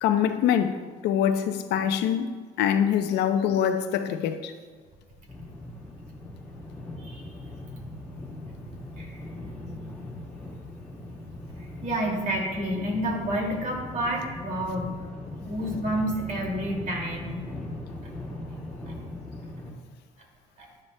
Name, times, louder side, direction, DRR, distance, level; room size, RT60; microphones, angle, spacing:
voice 1, 0.0-0.8 1.0-4.5, left 9 dB, 85° left, 0.6 m, -24 dB
sound 1, 5.3-19.7, left 1 dB, 10° left, 1.9 m, -40 dB
voice 2, 9.0-10.0 11.8-15.0 15.4-17.5 19.5-19.7 20.6-20.7, right 1 dB, 50° right, 2.4 m, -30 dB
11.0 x 9.8 x 2.2 m
cardioid pair, 110°, 17 cm